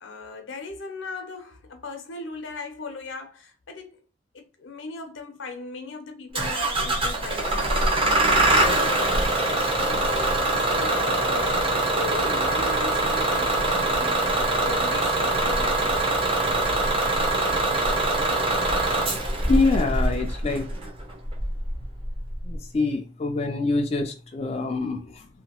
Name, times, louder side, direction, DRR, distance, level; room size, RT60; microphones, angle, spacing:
voice 1, 0.0-4.0 4.3-7.7 8.2-16.2 24.5-25.1, left 3 dB, 85° left, 0.7 m, -38 dB
Bus / Engine starting, 6.3-22.6, right 2 dB, 30° right, 0.6 m, -23 dB
voice 2, 19.5-20.7 22.4-25.3, left 3 dB, 35° left, 0.3 m, -25 dB
2.8 x 2.2 x 2.9 m
head